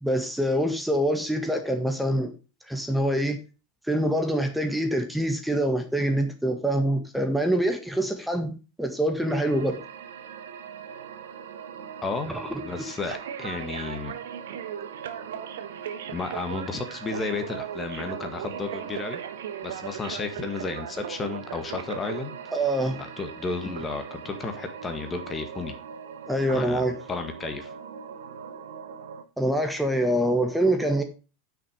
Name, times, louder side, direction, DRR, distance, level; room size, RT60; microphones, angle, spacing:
voice 1, 0.0-2.3 2.7-3.4 3.9-8.5 8.8-9.8 12.3-13.1 22.5-23.0 26.3-26.9 29.4-31.0, right 1 dB, ahead, 1.7 m, -25 dB
sound 1, 9.3-29.2, right 8 dB, 65° right, 1.2 m, -38 dB
voice 2, 12.0-14.2 16.1-19.2 19.6-22.4 23.0-25.7 26.5-27.7, left 4 dB, 20° left, 1.7 m, -33 dB
9.3 x 6.4 x 5.1 m
figure-of-eight pair, 85°, 0 cm